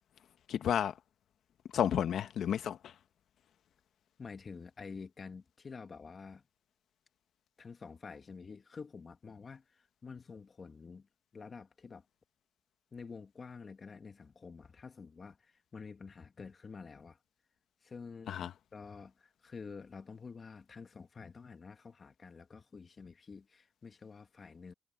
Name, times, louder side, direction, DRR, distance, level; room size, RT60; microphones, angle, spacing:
voice 1, 0.5-1.0 1.7-2.9 18.3-18.5, left 9 dB, 65° left, 1.2 m, -31 dB
voice 2, 4.2-6.4 7.6-11.1 11.3-12.1 12.9-17.2 17.8-18.5 18.7-24.7, left 5 dB, 35° left, 2.1 m, -49 dB
cardioid pair, 90°, 0 cm